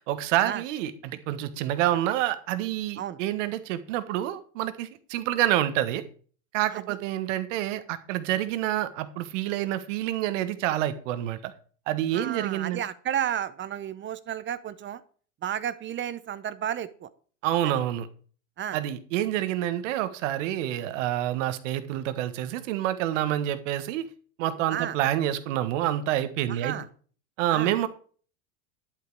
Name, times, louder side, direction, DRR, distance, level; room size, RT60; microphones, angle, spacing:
voice 1, 0.1-6.0 6.5-11.5 11.9-12.8 17.4-18.1 18.7-24.1 24.4-26.7 27.4-27.9, right 13 dB, 70° right, 12 dB, 1.5 m, -28 dB
voice 2, 12.1-15.0 15.4-17.1 17.6-17.7 18.6-18.8 24.7-25.0 26.5-26.9 27.5-27.7, right 10 dB, 30° right, 15 dB, 0.8 m, -32 dB
11.0 x 8.7 x 4.7 m, 0.43 s
supercardioid pair, 110°, 39 cm